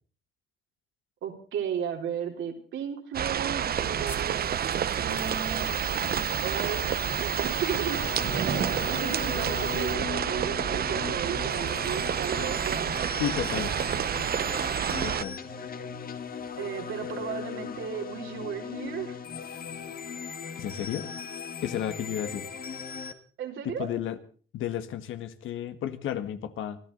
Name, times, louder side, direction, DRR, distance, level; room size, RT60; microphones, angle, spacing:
voice 1, 1.2-5.9 6.4-6.8 7.2-8.1 8.9-12.9 16.6-19.2 23.4-23.9, right 8 dB, 80° right, 3 dB, 4.1 m, -35 dB
sound 1, 3.1-15.2, right 9 dB, 50° right, 0.8 m, -29 dB
sound 2, 3.6-9.9, right 1 dB, 10° left, 1.5 m, -40 dB
sound 3, 7.6-23.1, left 7 dB, 45° left, 1.8 m, -38 dB
voice 2, 13.2-13.7 14.6-14.7 15.0-15.4 20.6-21.1 21.6-22.5 23.6-24.2 24.5-26.8, left 10 dB, 80° left, 11 dB, 1.8 m, -32 dB
25.0 x 14.0 x 4.0 m, 0.42 s
cardioid pair, 90°, 20 cm